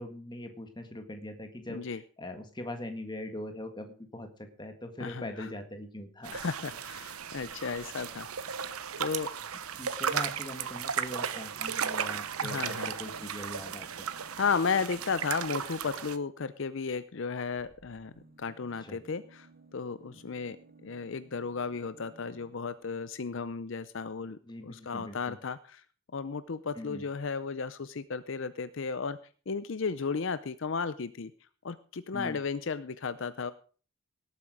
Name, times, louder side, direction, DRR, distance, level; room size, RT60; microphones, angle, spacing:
voice 1, 0.0-6.4 9.7-14.1 18.8-19.0 24.4-25.3 26.7-27.0 32.1-32.4, left 1 dB, 20° left, 6 dB, 1.6 m, -42 dB
voice 2, 1.7-2.0 5.0-5.5 6.3-8.7 9.0-9.3 12.4-12.9 14.4-18.1 18.4-20.6 20.8-24.4 24.6-25.8 26.1-29.2 29.5-31.3 31.6-33.5, left 5 dB, 60° left, 14 dB, 0.5 m, -34 dB
sound 1, 6.2-16.2, right 7 dB, 85° right, 0.9 m, -35 dB
sound 2, 10.9-15.7 17.4-22.8 23.8-23.9 24.1-24.2, right 2 dB, 40° right, 2.0 m, -59 dB
18.0 x 8.4 x 4.9 m, 0.40 s
head